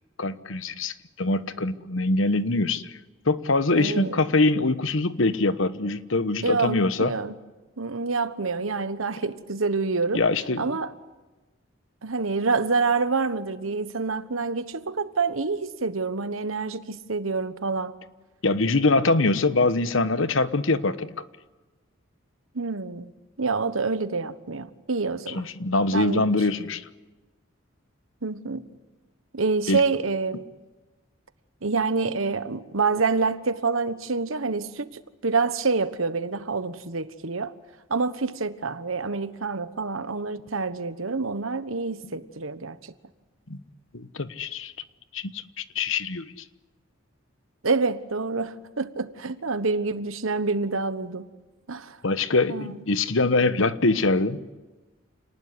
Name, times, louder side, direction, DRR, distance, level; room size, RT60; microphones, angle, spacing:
voice 1, 0.2-3.0 3.3-7.1 10.1-10.7 18.4-21.1 25.3-26.9 29.7-29.8 43.5-43.6 43.9-44.7 45.1-46.3 52.0-54.4, left 3 dB, 75° left, 1.2 m, -23 dB
voice 2, 3.8-4.2 6.4-7.3 7.8-10.2 10.6-10.9 12.0-18.0 22.5-23.1 23.4-25.5 25.9-26.3 28.2-28.7 29.3-30.5 31.6-34.9 35.2-37.5 37.9-42.8 47.6-51.3 51.7-52.0 52.5-52.7, right 4 dB, 85° right, 1.3 m, -27 dB
28.5 x 19.5 x 9.7 m
head